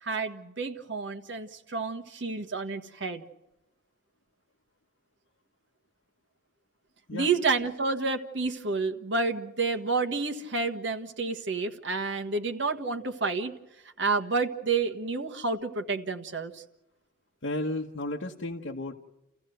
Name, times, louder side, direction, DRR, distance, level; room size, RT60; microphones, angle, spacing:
voice 1, 0.0-3.2 7.1-13.5 14.0-16.6, right 4 dB, 65° right, 6 dB, 1.5 m, -29 dB
voice 2, 17.4-19.0, left 2 dB, 65° left, -1 dB, 1.2 m, -33 dB
29.0 x 15.0 x 7.8 m, 0.97 s
head